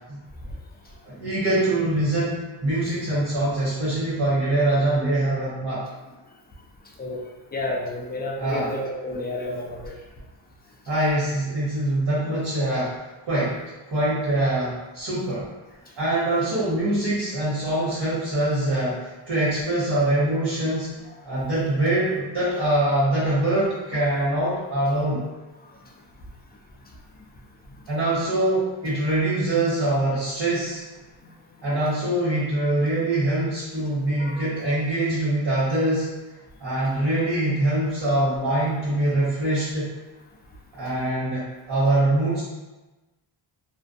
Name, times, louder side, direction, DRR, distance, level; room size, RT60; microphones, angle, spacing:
voice 1, 1.0-5.8 8.4-8.7 10.9-12.9 13.3-13.6 13.9-15.5 16.0-19.0 19.3-20.9 21.2-25.2 27.9-30.8 31.6-36.1 36.6-39.9 40.7-42.4, right 1 dB, 50° right, -11 dB, 1.1 m, -23 dB
voice 2, 7.5-10.0 34.2-34.4, left 2 dB, 20° left, -1 dB, 0.3 m, -30 dB
2.5 x 2.2 x 2.5 m, 1.1 s
cardioid pair, 90°, 50 cm